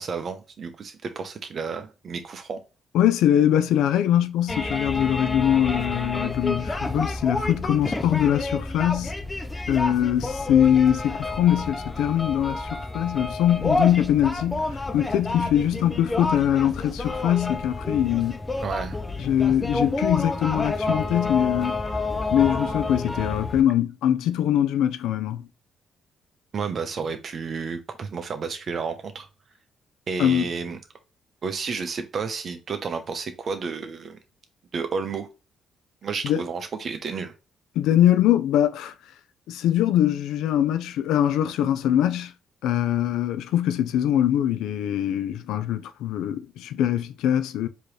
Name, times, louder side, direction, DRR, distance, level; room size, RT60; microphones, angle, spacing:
voice 1, 0.0-2.6 18.6-19.0 26.5-29.3 30.1-30.8 31.4-34.2 34.7-35.3 36.0-37.3, right 5 dB, 50° right, 0.8 m, -31 dB
voice 2, 2.9-9.1 9.7-18.4 19.2-21.8 22.3-25.5 30.2-30.5 36.2-36.4 37.8-38.9 39.5-42.3 42.6-47.7, left 11 dB, 90° left, 0.4 m, -22 dB
sound 1, 4.5-23.6, left 2 dB, 20° left, 0.6 m, -29 dB
4.5 x 3.0 x 3.2 m
cardioid pair, 90°, 0 cm